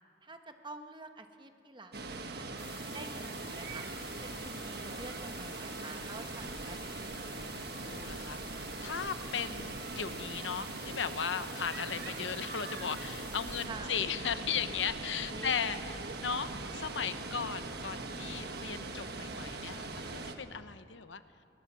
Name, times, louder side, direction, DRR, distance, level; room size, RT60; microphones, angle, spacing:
voice 1, 0.2-3.9 4.2-7.3 13.7-14.0 15.3-15.5, right 2 dB, 25° right, 6 dB, 1.2 m, -48 dB
Water, 1.9-20.4, right 3 dB, 60° right, 1.4 m, -41 dB
sound 1, 2.6-13.7, left 6 dB, 50° left, 5.0 m, -51 dB
voice 2, 7.3-8.4 8.8-21.2, left 7 dB, 85° left, 11 dB, 0.9 m, -37 dB
20.0 x 18.0 x 7.5 m, 2.5 s
head